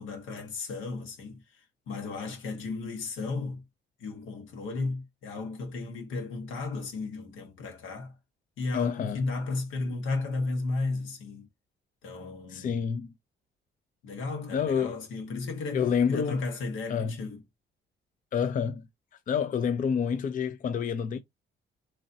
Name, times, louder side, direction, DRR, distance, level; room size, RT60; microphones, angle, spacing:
voice 1, 0.0-3.6 4.0-8.2 8.6-11.5 12.0-12.9 14.0-17.4, left 3 dB, 80° left, 1.5 m, -34 dB
voice 2, 8.7-9.2 12.5-13.1 14.5-15.0 15.7-16.4 16.9-17.2 18.3-18.9 19.3-21.2, left 7 dB, 45° left, 0.5 m, -28 dB
3.8 x 3.1 x 2.7 m
cardioid pair, 90°, 20 cm